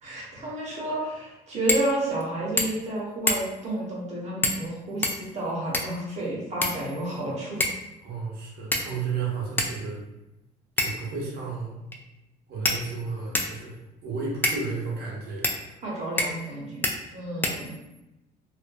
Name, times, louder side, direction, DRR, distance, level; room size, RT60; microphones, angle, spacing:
voice 1, 0.0-7.7 15.8-17.8, right 1 dB, 40° right, -5 dB, 1.0 m, -31 dB
sound 1, 1.7-1.9 2.2-2.3 2.6-2.9 3.3-3.7 4.4-4.7 5.0-6.0 6.6-7.2 7.6-7.9 8.7-9.1 9.6-9.7 10.8-11.1 11.9-12.0 12.6-13.6 14.4-14.6 15.4-15.6 16.2-16.5 16.8-17.0 17.4-18.0, left 1 dB, 10° left, 0.3 m, -27 dB
voice 2, 8.0-10.0 10.8-11.8 12.5-15.8, right 4 dB, 70° right, -4 dB, 0.9 m, -33 dB
2.5 x 2.5 x 2.2 m, 0.95 s
cardioid pair, 110°, 17 cm